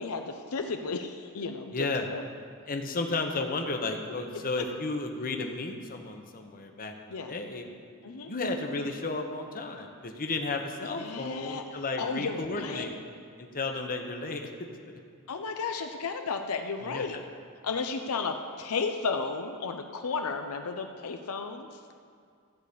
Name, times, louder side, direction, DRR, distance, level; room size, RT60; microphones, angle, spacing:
voice 1, 0.0-2.2 7.1-7.3 8.0-8.3 10.8-12.8 15.3-17.2 17.6-21.8, left 4 dB, 80° left, 5 dB, 0.7 m, -33 dB
voice 2, 1.7-2.1 2.7-7.6 8.2-12.9 13.4-14.5 16.8-17.0, left 3 dB, 40° left, 4 dB, 1.0 m, -33 dB
14.5 x 4.9 x 8.5 m, 2.2 s
head